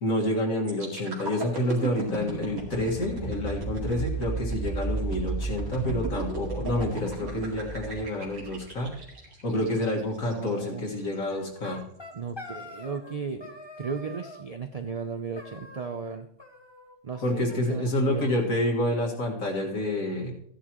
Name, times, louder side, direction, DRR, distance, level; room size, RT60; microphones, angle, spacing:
voice 1, 0.0-8.9 9.4-11.8 17.2-20.3, left 1 dB, 70° left, -1 dB, 2.3 m, -28 dB
sound 1, 0.7-10.5 11.0-11.1, right 3 dB, 85° right, 2.5 m, -34 dB
voice 2, 10.2-10.8 12.1-16.3 17.0-18.3, right 5 dB, 60° right, 7 dB, 0.4 m, -35 dB
sound 2, 11.3-13.2 13.4-14.4 15.4-16.1 16.4-17.2 17.5-17.6 17.8-17.9 18.2-19.3, left 1 dB, 20° left, 1.0 m, -45 dB
14.5 x 10.0 x 3.0 m, 0.67 s
omnidirectional pair, 1.5 m